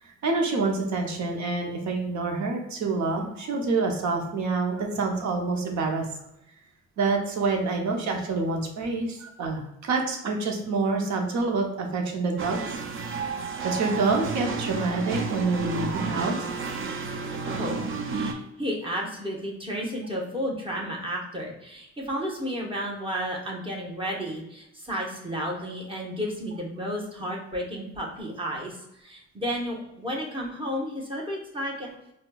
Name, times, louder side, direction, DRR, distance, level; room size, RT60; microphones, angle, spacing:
voice 1, 0.0-6.0 7.0-12.8 13.6-16.5 18.1-18.2, right 3 dB, 65° right, 2 dB, 0.8 m, -27 dB
sound 1, 12.4-18.3, right 5 dB, 45° right, 0.5 m, -31 dB
voice 2, 17.5-31.9, equal, 15° right, -2 dB, 1.0 m, -32 dB
4.3 x 2.3 x 2.3 m, 0.84 s
cardioid pair, 90°, 30 cm